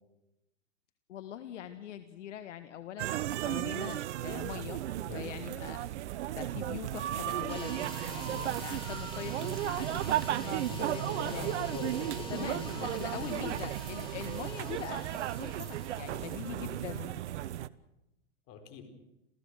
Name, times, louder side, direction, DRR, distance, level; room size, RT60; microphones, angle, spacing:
voice 1, 1.1-4.8 5.1-5.8 6.3-11.6 12.3-15.0 15.4-17.2, left 10 dB, 70° left, 10 dB, 1.6 m, -43 dB
sound 1, 3.0-17.7, right 13 dB, 60° right, 0.9 m, -35 dB
voice 2, 5.1-5.5 8.2-8.6 10.7-13.6 18.5-18.9, left 6 dB, 35° left, 7 dB, 4.6 m, -44 dB
sound 2, 7.5-16.8, equal, 15° left, 4.3 m, -46 dB
28.5 x 15.5 x 6.5 m, 0.92 s
hypercardioid pair, 140°, 38 cm